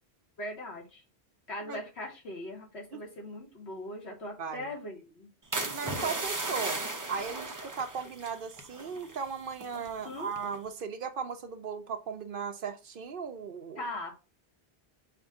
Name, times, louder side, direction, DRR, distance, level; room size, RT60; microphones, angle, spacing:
voice 1, 0.4-1.0 1.5-5.3 9.7-10.3 13.8-14.1, left 1 dB, 80° left, 1.9 m, -40 dB
sound 1, 5.5-9.3 9.5-9.9 10.4-10.7, right 2 dB, 20° right, 0.6 m, -36 dB
voice 2, 5.7-6.8 7.1-13.8, right 6 dB, 60° right, 0.8 m, -37 dB
5.6 x 2.6 x 3.5 m
omnidirectional pair, 1.1 m